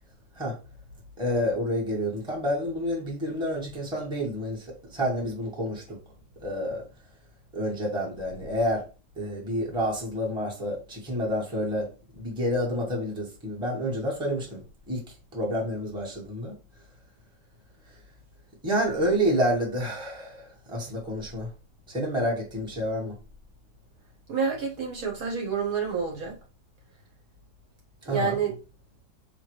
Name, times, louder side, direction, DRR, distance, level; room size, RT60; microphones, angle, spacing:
voice 1, 1.2-6.0 6.4-6.8 7.5-8.8 9.2-11.9 12.2-14.6 14.9-15.0 15.3-16.5 18.6-21.5 21.9-23.1 28.1-28.4, equal, 5° right, 1.1 m, -29 dB
voice 2, 24.3-26.4 28.1-28.6, right 5 dB, 55° right, 1.3 m, -28 dB
4.4 x 3.1 x 3.1 m
omnidirectional pair, 1.9 m